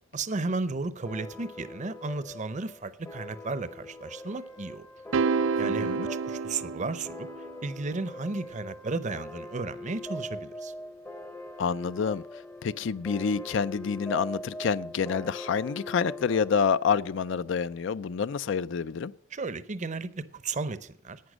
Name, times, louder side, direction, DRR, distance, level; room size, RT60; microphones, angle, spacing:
voice 1, 0.1-4.9 5.6-7.3 7.6-10.7 19.3-21.2, right 3 dB, 40° right, 0.6 m, -34 dB
sound 1, 1.1-18.2, left 1 dB, 10° left, 0.7 m, -42 dB
sound 2, 5.1-7.5, right 5 dB, 75° right, 0.4 m, -29 dB
voice 2, 5.6-6.1 11.6-12.2 12.6-19.1, left 6 dB, 65° left, 0.4 m, -28 dB
11.5 x 8.9 x 6.2 m
head